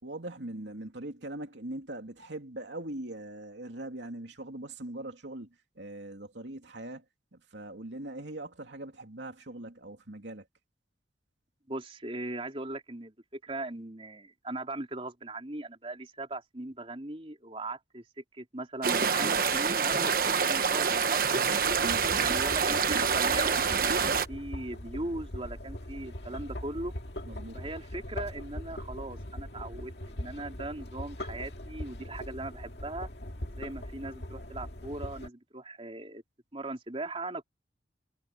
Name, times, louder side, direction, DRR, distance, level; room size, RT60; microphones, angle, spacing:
voice 1, 0.0-7.1 7.3-10.5 21.8-22.2 27.2-27.6, right 1 dB, 85° right, 2.9 m, -41 dB
voice 2, 11.7-18.0 18.3-21.5 22.1-26.9 27.5-33.1 33.6-36.2 36.5-37.4, right 2 dB, 30° right, 3.7 m, -39 dB
sound 1, 18.8-24.3, right 6 dB, 55° right, 1.2 m, -26 dB
sound 2, 21.6-35.3, left 1 dB, 65° left, 2.2 m, -41 dB
head